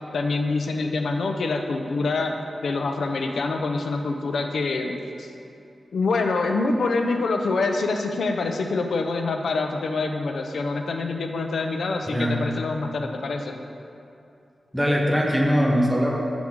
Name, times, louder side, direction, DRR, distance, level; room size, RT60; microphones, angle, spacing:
voice 1, 0.1-2.4 2.6-5.3 5.9-13.6, left 3 dB, 80° left, 4 dB, 0.6 m, -25 dB
voice 2, 12.0-12.4 14.7-16.2, equal, ahead, -2 dB, 0.9 m, -21 dB
7.7 x 7.1 x 3.6 m, 2.6 s
wide cardioid pair, 130°, 0 cm